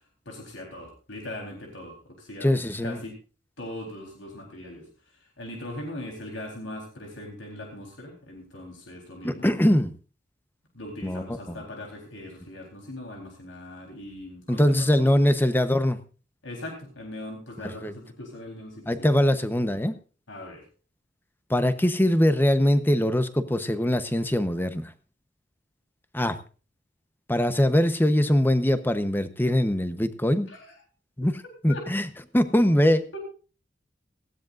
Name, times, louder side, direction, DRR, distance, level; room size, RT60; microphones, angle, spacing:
voice 1, 0.3-2.5 2.8-3.1 3.6-4.9 5.4-9.5 10.7-15.2 16.4-19.4 20.3-20.6 30.5-30.7 31.7-31.9 33.1-33.2, left 1 dB, 80° left, 1 dB, 3.9 m, -40 dB
voice 2, 2.4-3.0 9.2-9.9 11.0-11.6 14.5-16.0 17.6-17.9 18.9-20.0 21.5-24.9 26.1-26.4 27.3-30.5 31.2-31.3 31.6-32.1 32.3-33.1, left 1 dB, 10° left, 10 dB, 1.0 m, -22 dB
18.5 x 16.0 x 2.6 m, 0.37 s
head